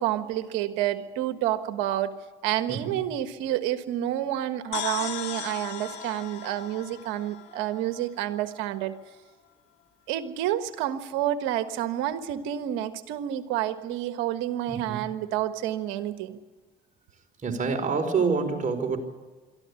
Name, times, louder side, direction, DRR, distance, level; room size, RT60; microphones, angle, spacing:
voice 1, 0.0-2.2 2.4-8.9 10.1-16.4, right 12 dB, 80° right, 10 dB, 1.5 m, -29 dB
sound 1, 4.7-8.4, left 11 dB, 70° left, 2.4 m, -37 dB
voice 2, 14.7-15.0 17.4-19.0, right 5 dB, 45° right, 4 dB, 4.6 m, -27 dB
23.0 x 14.0 x 9.7 m, 1.3 s
supercardioid pair, 75°, 19 cm